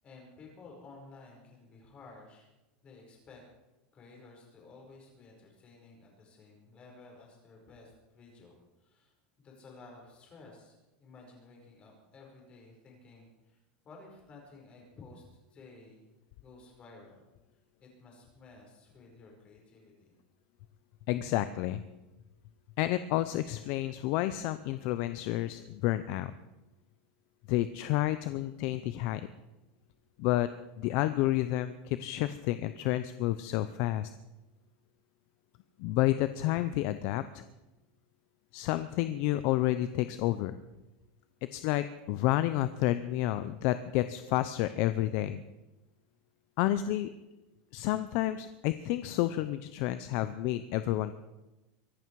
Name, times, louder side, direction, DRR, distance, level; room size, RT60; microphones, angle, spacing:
voice 1, 0.0-2.5 2.8-3.4 3.9-16.1 16.4-17.2 17.5-20.2, left 3 dB, 20° left, 0 dB, 5.0 m, -54 dB
voice 2, 21.1-21.8 22.8-26.3 27.5-29.3 30.2-30.5 30.8-34.1 35.8-37.4 38.5-40.6 41.5-45.4 46.6-47.1 47.7-51.1, left 15 dB, 45° left, 12 dB, 0.6 m, -30 dB
23.5 x 11.0 x 4.7 m, 1.0 s
supercardioid pair, 170°, 5 cm